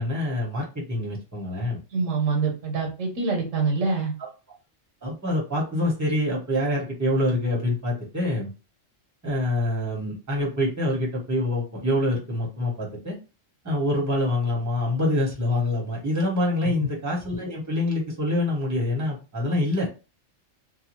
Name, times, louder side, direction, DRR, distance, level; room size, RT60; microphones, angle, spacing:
voice 1, 0.0-1.8 5.0-8.5 9.2-13.2 13.6-19.9, left 1 dB, 15° right, -2 dB, 0.9 m, -26 dB
voice 2, 1.9-4.1 16.6-16.9, right 4 dB, 75° right, 1 dB, 1.2 m, -25 dB
2.7 x 2.3 x 3.0 m, 0.31 s
omnidirectional pair, 1.3 m